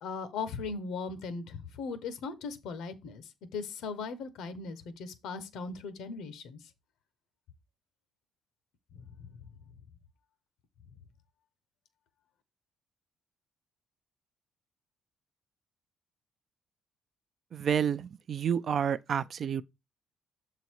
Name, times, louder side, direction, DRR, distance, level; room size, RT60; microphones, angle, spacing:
voice 1, 0.0-6.6 8.9-9.5, left 4 dB, 85° left, 1.1 m, -39 dB
voice 2, 17.5-19.6, right 8 dB, 45° right, 0.4 m, -29 dB
7.3 x 4.0 x 4.6 m
cardioid pair, 155°, 0 cm